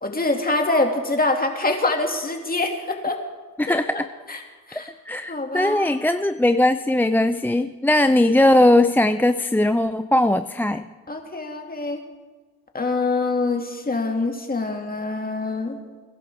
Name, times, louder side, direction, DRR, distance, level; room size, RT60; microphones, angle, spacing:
voice 1, 0.0-3.2 3.7-4.0 4.3-4.4 4.7-4.9 5.3-6.0 11.1-12.0 12.7-15.8, left 2 dB, 25° left, 3 dB, 2.3 m, -25 dB
voice 2, 3.6-4.1 4.7-10.8, left 1 dB, 5° left, 9 dB, 0.4 m, -19 dB
22.0 x 11.0 x 3.5 m, 1.4 s
cardioid pair, 70°, 37 cm